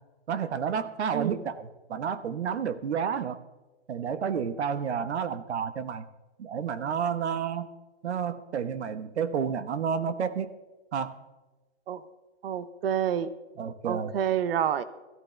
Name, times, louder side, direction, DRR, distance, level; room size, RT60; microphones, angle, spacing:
voice 1, 0.3-3.4 3.9-6.0 6.4-7.7 8.0-10.5 10.9-11.1 13.6-14.1, right 7 dB, 80° right, 12 dB, 1.2 m, -30 dB
voice 2, 12.4-13.3 13.8-14.8, right 9 dB, 60° right, 14 dB, 0.8 m, -28 dB
17.0 x 14.0 x 3.3 m, 1.1 s
hypercardioid pair, 165°, 33 cm